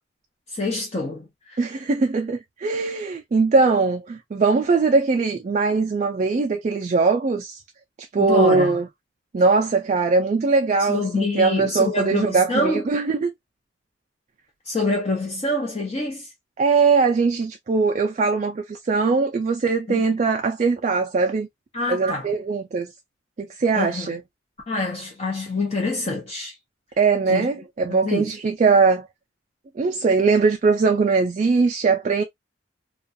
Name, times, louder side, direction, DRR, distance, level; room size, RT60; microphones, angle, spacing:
voice 1, 0.5-1.6 8.2-8.8 10.8-12.8 14.7-16.3 19.9-20.0 21.7-22.3 23.7-24.1 24.7-26.5 27.3-27.5 27.9-28.3, left 2 dB, 35° left, 0.6 m, -26 dB
voice 2, 1.6-7.6 8.1-8.9 9.3-13.3 16.6-21.5 21.9-22.9 23.4-24.2 27.0-29.0 29.8-32.2, right 4 dB, 40° right, 0.3 m, -21 dB
2.3 x 2.3 x 2.5 m
head